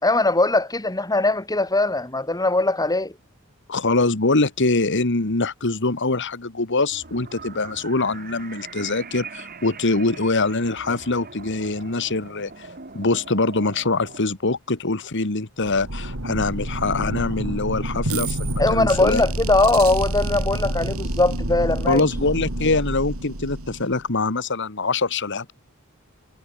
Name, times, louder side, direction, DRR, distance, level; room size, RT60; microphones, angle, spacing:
voice 1, 0.0-3.1 18.6-22.0, left 2 dB, 15° left, 2.7 m, -20 dB
voice 2, 3.7-12.7 12.9-19.2 21.9-25.5, left 3 dB, 60° left, 1.9 m, -23 dB
sound 1, 6.9-14.2, right 4 dB, 45° right, 3.3 m, -41 dB
sound 2, 15.6-24.1, right 1 dB, 80° right, 4.1 m, -28 dB
head